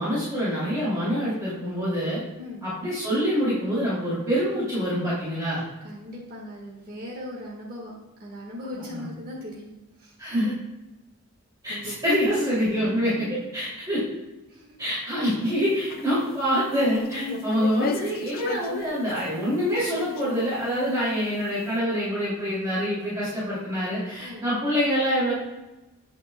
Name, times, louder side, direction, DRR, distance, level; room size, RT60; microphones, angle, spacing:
voice 1, 0.0-2.2 2.6-5.6 8.7-9.1 10.2-10.5 11.6-14.0 14.8-25.3, equal, 15° right, -10 dB, 2.5 m, -26 dB
voice 2, 2.4-2.7 5.8-7.9 8.2-9.7 10.0-10.1 11.7-12.0 14.5-14.8 17.2-17.5 24.2-24.5, left 1 dB, 40° right, -4 dB, 1.5 m, -38 dB
sound 1, 15.7-16.3 17.0-19.3 19.7-20.6, left 4 dB, 40° left, 0.4 m, -35 dB
8.3 x 8.3 x 2.2 m, 1.0 s
head